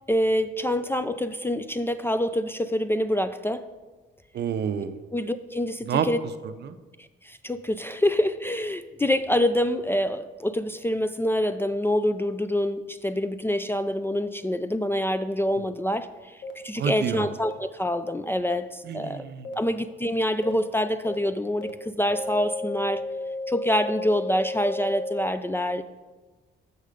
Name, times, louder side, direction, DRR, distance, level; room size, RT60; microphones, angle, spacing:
voice 1, 0.1-3.6 5.1-6.2 7.0-19.3 19.6-23.1 23.5-25.8, left 1 dB, 10° left, 11 dB, 0.3 m, -26 dB
voice 2, 4.3-5.0 5.9-6.1 6.6-6.8 16.8-17.3 18.8-19.5, right 8 dB, 55° right, 11 dB, 0.6 m, -28 dB
sound 1, 16.4-16.5 17.4-17.5 18.4-18.5 19.4-19.5 20.4-20.5 21.1-21.2 21.6-21.7 22.1-25.3, left 2 dB, 70° left, 1.1 m, -33 dB
6.6 x 6.4 x 5.0 m, 1.2 s
cardioid pair, 90°, 20 cm